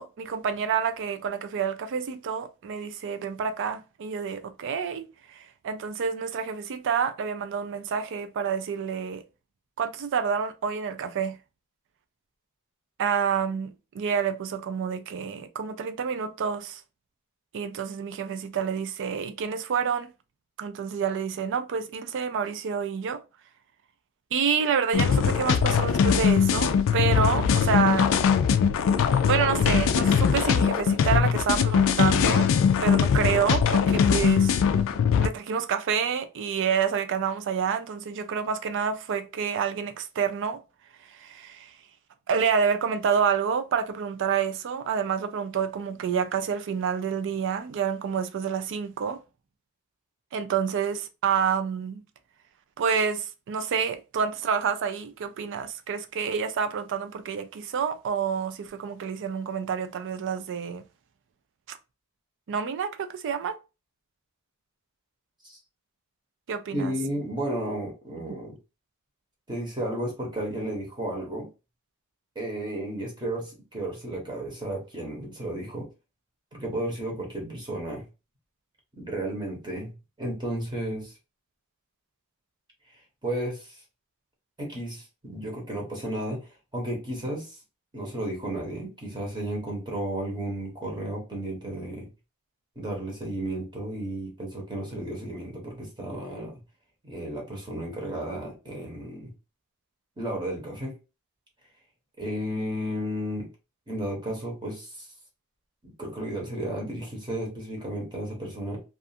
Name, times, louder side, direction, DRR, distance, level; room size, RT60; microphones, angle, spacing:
voice 1, 0.0-9.2 9.8-11.4 13.0-16.8 17.5-20.1 20.6-23.2 24.3-28.1 29.2-32.5 32.8-34.5 35.2-40.6 41.1-41.7 42.3-49.2 50.3-52.0 52.8-60.8 61.7-61.8 62.5-63.6 66.5-66.9, right 6 dB, 55° right, 0.4 m, -28 dB
sound 1, 24.9-35.3, left 7 dB, 60° left, 0.3 m, -21 dB
voice 2, 66.7-68.6 69.5-71.5 72.3-75.9 76.5-78.1 79.0-81.1 83.2-83.8 84.6-87.6 87.9-92.1 92.8-96.6 97.0-99.3 100.2-100.9 102.2-103.5 103.9-105.1 105.8-108.8, right 1 dB, 20° right, 0.8 m, -33 dB
2.4 x 2.3 x 2.6 m
head